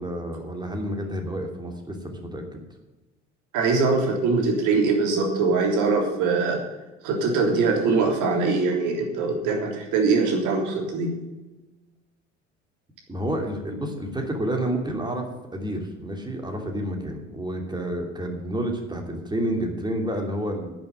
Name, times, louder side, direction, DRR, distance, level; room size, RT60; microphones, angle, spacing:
voice 1, 0.0-2.6 13.1-15.3 15.5-20.7, right 1 dB, 10° right, 3 dB, 3.0 m, -29 dB
voice 2, 3.5-6.6 7.0-11.1, right 4 dB, 55° right, 2 dB, 3.4 m, -22 dB
10.5 x 7.2 x 9.5 m, 1.1 s
figure-of-eight pair, 65°, 36 cm